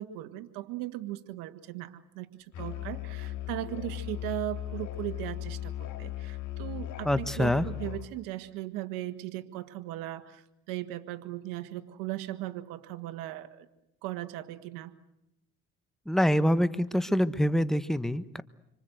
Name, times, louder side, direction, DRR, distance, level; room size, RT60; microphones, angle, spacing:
voice 1, 0.0-13.7 14.0-14.9, right 15 dB, 85° right, 8 dB, 1.7 m, -38 dB
Musical instrument, 2.5-8.1, left 14 dB, 65° left, 2.2 m, -37 dB
voice 2, 7.0-7.6 16.1-18.4, equal, ahead, 13 dB, 1.4 m, -25 dB
27.0 x 25.5 x 8.0 m, 0.83 s
supercardioid pair, 85°, 32 cm